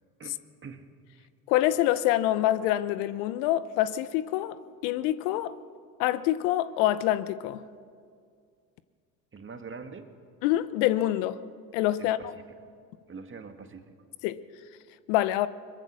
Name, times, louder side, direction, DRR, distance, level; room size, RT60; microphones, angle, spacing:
voice 1, 0.2-0.9 9.3-10.1 12.0-12.4 13.1-13.9, right 5 dB, 25° right, 1.8 m, -44 dB
voice 2, 1.5-4.6 4.8-5.6 6.0-7.6 10.4-11.4 11.7-12.3 14.2-14.4 15.1-15.5, left 14 dB, 70° left, 0.9 m, -26 dB
22.5 x 20.5 x 6.3 m
hypercardioid pair, 75°, 47 cm